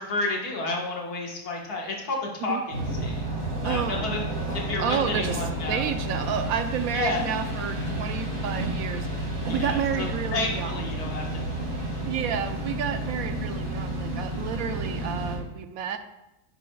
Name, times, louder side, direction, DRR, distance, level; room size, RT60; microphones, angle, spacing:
voice 1, 0.0-2.6 3.0-3.3 3.6-4.2 4.5-5.8 6.9-7.2 9.5-12.0, left 3 dB, 75° left, -1 dB, 1.9 m, -31 dB
sound 1, 2.7-15.4, right 1 dB, 55° right, 2.5 m, -31 dB
voice 2, 3.6-4.1 4.8-10.7 12.0-16.0, right 8 dB, 70° right, 8 dB, 1.1 m, -31 dB
10.5 x 7.5 x 2.3 m, 0.92 s
omnidirectional pair, 1.6 m